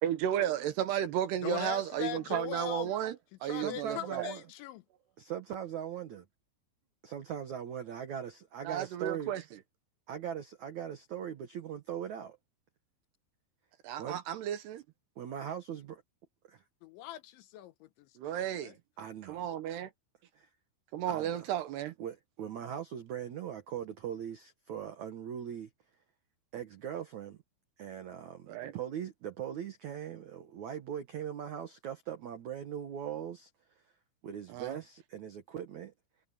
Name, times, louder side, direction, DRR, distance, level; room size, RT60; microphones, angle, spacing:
voice 1, 0.0-3.2 3.4-4.3 8.6-9.4 13.8-14.8 18.2-18.7 19.3-19.9 20.9-21.9 28.5-28.7 34.5-34.7, right 11 dB, 70° right, 2.8 m, -33 dB
voice 2, 1.4-2.9 3.4-4.8 16.8-18.7, left 12 dB, 75° left, 3.3 m, -41 dB
voice 3, 3.6-4.4 5.2-6.3 7.0-9.4 10.1-12.4 14.0-14.2 15.2-16.0 16.4-16.6 19.0-19.4 20.3-20.5 21.1-21.5 22.0-25.7 26.5-27.4 27.8-33.5 34.2-35.9, right 9 dB, 90° right, 1.6 m, -40 dB
omnidirectional pair, 5.6 m